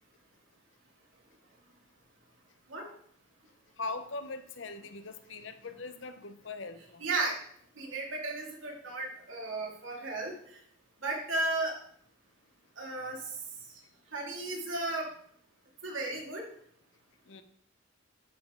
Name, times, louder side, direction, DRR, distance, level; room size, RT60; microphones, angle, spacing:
voice 1, 3.8-7.0 17.3-17.4, left 3 dB, 70° left, 10 dB, 0.8 m, -41 dB
voice 2, 7.0-7.4 7.8-10.3 11.0-11.8 12.8-13.3 14.1-15.1 15.8-16.5, right 2 dB, 85° right, -1 dB, 2.4 m, -34 dB
12.0 x 5.2 x 3.8 m, 0.63 s
head